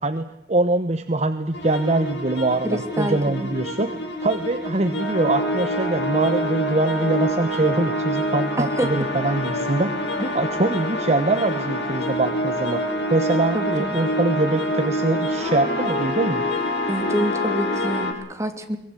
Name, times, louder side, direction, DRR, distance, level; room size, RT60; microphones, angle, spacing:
voice 1, 0.0-3.9 4.2-9.9 10.3-12.8 13.1-16.4, right 2 dB, 40° right, 8 dB, 1.1 m, -23 dB
sound 1, 1.5-18.1, equal, 80° left, 7.2 m, -26 dB
voice 2, 2.6-3.5 8.6-8.9 10.2-10.4 13.5-13.9 16.9-18.8, right 1 dB, 15° right, 6 dB, 2.7 m, -27 dB
23.5 x 20.5 x 8.4 m, 0.79 s
head